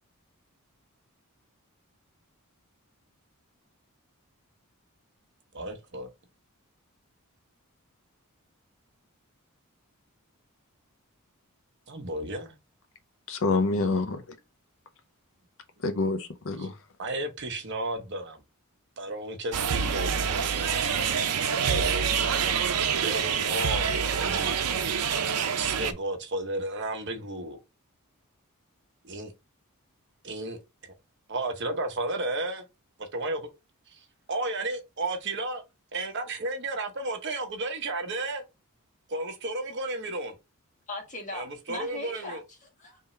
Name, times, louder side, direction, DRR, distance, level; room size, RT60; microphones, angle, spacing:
voice 1, 5.5-6.1 11.9-12.6 16.6-16.7 17.0-18.4 19.0-22.0 22.9-24.6 25.6-27.6 29.0-29.3 30.2-30.6 31.3-32.6 33.0-33.5 33.9-34.0 34.3-35.6 35.9-38.4 39.1-40.4 41.3-42.4, right 2 dB, 50° right, 0.9 m, -33 dB
voice 2, 13.3-14.4 15.8-16.8, left 3 dB, 60° left, 0.6 m, -27 dB
sound 1, 19.5-25.9, right 7 dB, 85° right, 0.6 m, -26 dB
voice 3, 40.9-43.0, left 2 dB, 35° left, 1.4 m, -39 dB
3.7 x 2.9 x 4.2 m
head